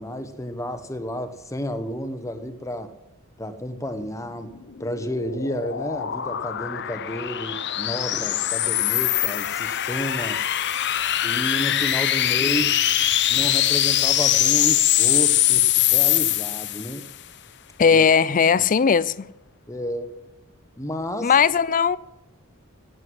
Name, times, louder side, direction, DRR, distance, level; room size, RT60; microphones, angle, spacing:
voice 1, 0.0-2.9 3.4-4.5 4.8-10.4 11.2-12.8 13.3-17.0 19.7-20.2 20.8-21.3, equal, 15° left, 1.2 m, -31 dB
sound 1, 4.5-17.1, left 12 dB, 55° left, 0.8 m, -22 dB
voice 2, 17.8-19.3 21.2-22.0, left 6 dB, 40° left, 0.4 m, -18 dB
16.0 x 8.1 x 7.8 m
head